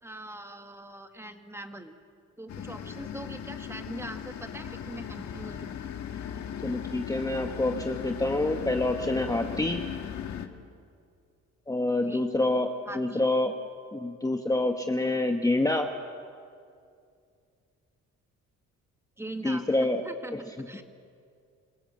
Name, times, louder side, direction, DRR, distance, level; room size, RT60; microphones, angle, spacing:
voice 1, 0.0-1.9 2.4-5.8 12.1-12.2 12.9-13.3 19.2-20.8, right 1 dB, 10° right, 6 dB, 1.7 m, -42 dB
sound 1, 2.5-10.5, left 8 dB, 65° left, 1.6 m, -37 dB
voice 2, 6.6-9.8 11.7-13.5 13.9-15.9 19.4-20.0, left 2 dB, 10° left, 4 dB, 1.2 m, -27 dB
26.5 x 17.0 x 7.6 m, 2.3 s
cardioid pair, 90°, 30 cm